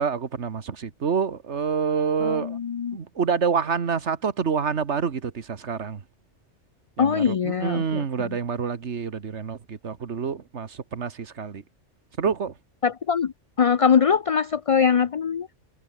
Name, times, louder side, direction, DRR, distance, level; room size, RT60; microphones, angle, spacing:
voice 1, 0.0-2.6 2.9-6.0 7.0-11.6 12.2-12.5, right 6 dB, 75° right, 1.7 m, -27 dB
voice 2, 2.2-3.0 7.0-8.4 12.8-13.3 13.6-15.5, left 7 dB, 50° left, 0.4 m, -22 dB
omnidirectional pair, 1.2 m